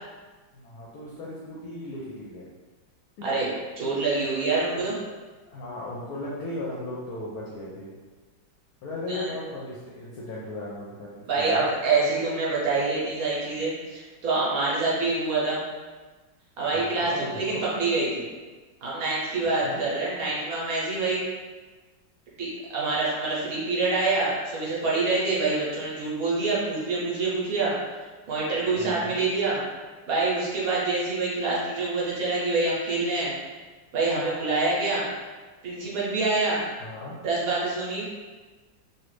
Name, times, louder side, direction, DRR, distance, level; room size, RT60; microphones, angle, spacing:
voice 1, 0.5-2.5 3.2-3.3 4.7-5.1 5.5-7.9 8.8-11.1 11.4-11.7 16.7-17.6 19.6-19.8 28.8-29.1 34.2-34.3 36.8-37.2, left 1 dB, 70° left, -5 dB, 0.9 m, -36 dB
voice 2, 3.8-4.9 9.1-9.3 11.3-15.6 16.6-18.3 18.8-21.3 22.4-27.7 28.3-29.6 30.1-33.3 33.9-35.1 35.6-36.6 37.2-38.0, right 3 dB, 60° right, -5 dB, 1.1 m, -26 dB
3.2 x 2.4 x 3.2 m, 1.3 s
omnidirectional pair, 2.0 m